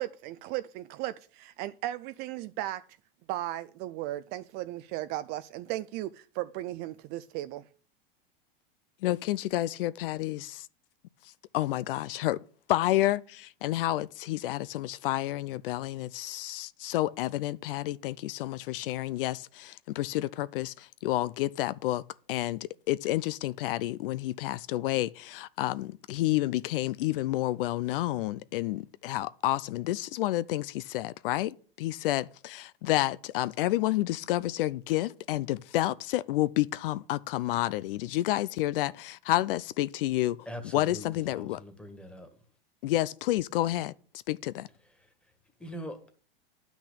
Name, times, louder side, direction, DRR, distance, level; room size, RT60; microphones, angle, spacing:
voice 1, 0.0-2.8 3.3-7.6, right 15 dB, 35° right, 0.4 m, -36 dB
voice 2, 9.0-10.7 11.5-12.4 12.7-22.0 22.3-40.4 40.7-41.6 42.8-43.9 44.3-44.7, left 15 dB, 70° left, 0.6 m, -30 dB
voice 3, 40.5-42.3 45.6-46.1, equal, 5° left, 1.9 m, -42 dB
10.0 x 6.2 x 8.6 m
supercardioid pair, 140°, 29 cm